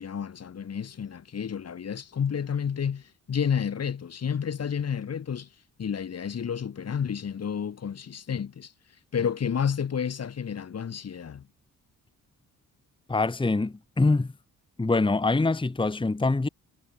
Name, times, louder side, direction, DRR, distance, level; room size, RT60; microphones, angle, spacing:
voice 1, 0.0-5.5 5.8-8.7 9.1-11.5, left 7 dB, 50° left, 1.7 m, -30 dB
voice 2, 13.1-14.3 14.8-16.5, left 3 dB, 15° left, 1.2 m, -24 dB
cardioid pair, 85°, 34 cm